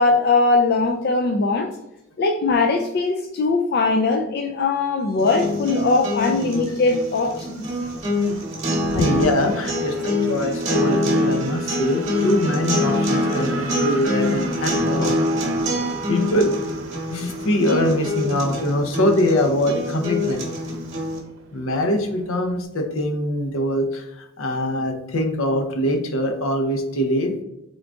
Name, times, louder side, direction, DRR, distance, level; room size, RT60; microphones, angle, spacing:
voice 1, 0.0-1.7 2.2-7.6, left 3 dB, 45° left, 3 dB, 0.3 m, -20 dB
sound 1, 5.2-21.2, left 1 dB, 30° right, 1.1 m, -25 dB
Race car auto racing / Accelerating revving vroom, 5.7-22.6, right 2 dB, 65° right, 0.7 m, -36 dB
voice 2, 8.9-15.2 16.1-16.5 17.1-20.4 21.5-27.3, left 1 dB, 70° left, 5 dB, 0.7 m, -23 dB
3.8 x 3.6 x 3.5 m, 0.87 s
head